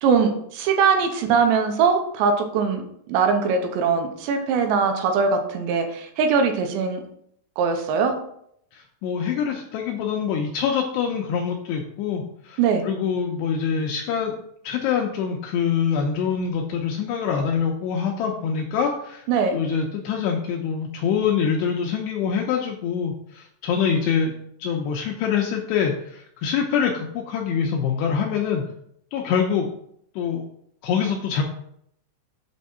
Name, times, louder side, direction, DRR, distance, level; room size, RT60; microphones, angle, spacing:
voice 1, 0.0-2.8 3.1-7.0 7.6-8.1 12.6-12.9 19.3-19.6, right 5 dB, 75° right, 5 dB, 2.8 m, -21 dB
voice 2, 8.7-14.4 14.6-19.3 19.5-24.3 24.6-28.6 29.1-29.7 30.2-30.4 30.8-31.4, left 7 dB, 90° left, 1 dB, 2.4 m, -25 dB
8.5 x 3.6 x 5.5 m, 0.70 s
omnidirectional pair, 5.6 m